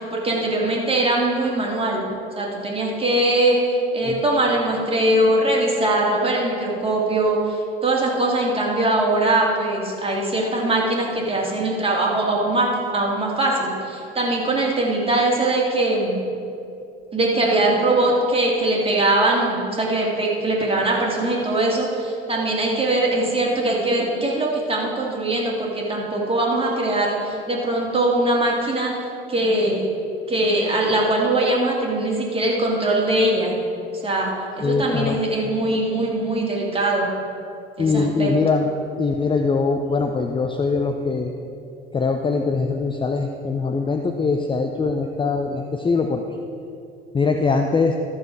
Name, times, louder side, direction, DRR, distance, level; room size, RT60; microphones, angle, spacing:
voice 1, 0.1-2.0 2.4-16.2 17.1-28.9 29.3-29.8 30.3-33.6 34.0-37.2 37.8-38.3, right 2 dB, 20° right, -2 dB, 2.6 m, -21 dB
voice 2, 34.6-35.2 37.8-38.7 39.0-41.3 41.9-46.2 47.1-47.9, left 4 dB, 15° left, 4 dB, 0.6 m, -22 dB
13.0 x 7.0 x 4.7 m, 2.6 s
figure-of-eight pair, 65°, 31 cm